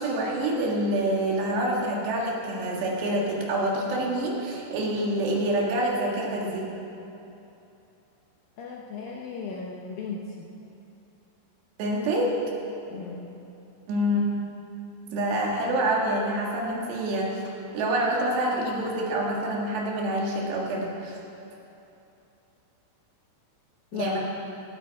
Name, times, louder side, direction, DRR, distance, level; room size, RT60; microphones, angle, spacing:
voice 1, 0.0-6.7 11.8-12.3 13.9-14.2 15.1-17.4 17.7-21.2 23.9-24.2, right 1 dB, 70° right, -2 dB, 3.9 m, -26 dB
voice 2, 8.6-10.5 12.9-13.2 23.9-24.2, left 5 dB, 70° left, -2 dB, 2.2 m, -36 dB
17.0 x 13.0 x 4.7 m, 2.9 s
omnidirectional pair, 5.2 m